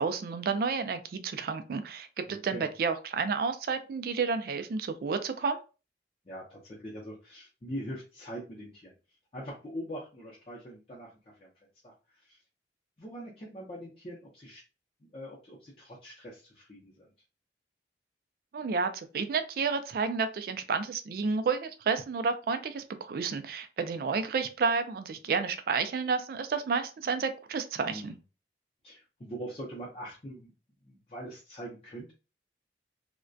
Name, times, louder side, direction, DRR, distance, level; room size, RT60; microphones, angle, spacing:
voice 1, 0.0-5.6 18.5-28.1, right 5 dB, 55° right, 9 dB, 0.3 m, -31 dB
voice 2, 2.3-2.7 6.3-8.9 9.3-11.1 11.4-11.5 11.8-12.4 13.0-14.6 15.0-17.1 27.9-28.1 28.8-30.5 30.8-32.1, equal, 35° left, -6 dB, 0.5 m, -42 dB
2.3 x 2.1 x 2.5 m, 0.32 s
head